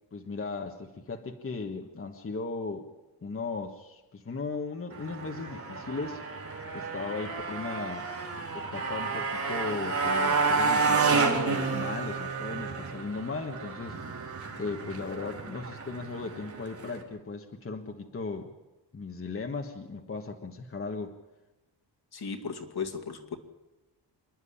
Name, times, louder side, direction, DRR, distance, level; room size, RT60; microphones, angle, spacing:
voice 1, 0.1-2.9 3.2-6.2 6.7-8.1 8.5-14.0 14.6-18.5 18.9-21.1, left 4 dB, 30° left, 3 dB, 1.4 m, -37 dB
Motorcycle, 4.9-17.0, right 4 dB, 40° right, 4.0 m, -30 dB
voice 2, 22.1-23.4, left 5 dB, 60° left, 6 dB, 2.3 m, -36 dB
27.0 x 10.5 x 10.0 m, 1.0 s
wide cardioid pair, 125°, 43 cm